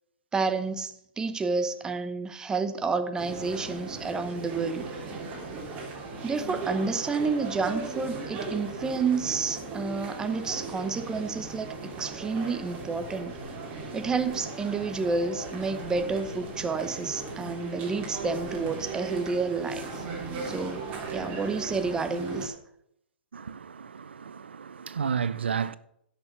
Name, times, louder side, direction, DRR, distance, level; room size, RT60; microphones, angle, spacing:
voice 1, 0.3-4.8 6.2-13.3 13.9-20.0 20.4-20.8 21.1-22.5, right 4 dB, 10° right, 0.9 m, -30 dB
sound 1, 3.2-22.5, right 3 dB, 30° right, 3.2 m, -37 dB
voice 2, 23.3-25.8, right 6 dB, 85° right, 0.5 m, -32 dB
10.5 x 6.7 x 6.1 m
hypercardioid pair, 130°, 6 cm